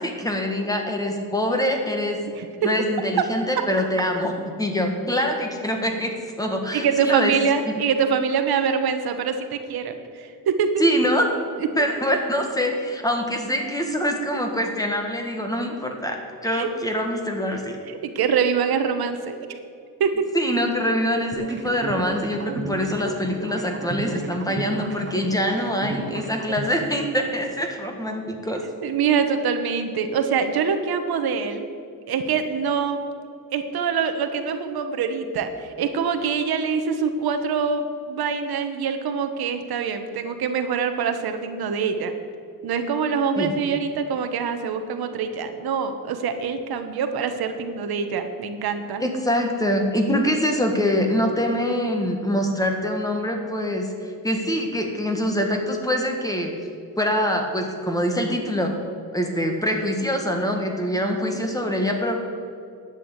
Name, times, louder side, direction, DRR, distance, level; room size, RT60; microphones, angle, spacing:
voice 1, 0.0-2.2 2.6-4.3 4.6-7.4 7.7-7.9 10.8-11.3 11.8-17.8 20.3-28.6 43.4-43.5 49.0-56.5 57.0-58.7 59.1-62.2, equal, 10° left, 3 dB, 1.6 m, -24 dB
voice 2, 6.7-10.8 16.5-16.7 17.9-19.4 20.0-20.3 28.8-31.7 32.1-33.0 33.5-42.1 42.6-49.0, right 6 dB, 90° right, 7 dB, 1.2 m, -24 dB
sound 1, 21.3-27.3, right 3 dB, 30° right, 1.1 m, -34 dB
11.0 x 8.5 x 8.2 m, 2.4 s
wide cardioid pair, 140°, 36 cm